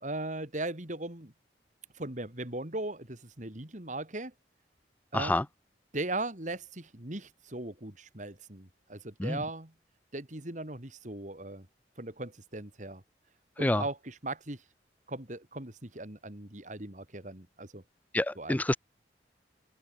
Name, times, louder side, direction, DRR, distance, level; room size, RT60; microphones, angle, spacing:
voice 1, 0.0-1.3 1.9-4.3 5.1-5.4 5.9-9.7 10.1-11.7 12.0-13.0 13.6-14.6 15.1-17.8 18.4-18.6, right 2 dB, 45° right, 3.2 m, -38 dB
voice 2, 5.1-5.5 9.2-9.4 13.6-13.8 18.1-18.8, left 1 dB, 10° left, 0.4 m, -27 dB
open air
head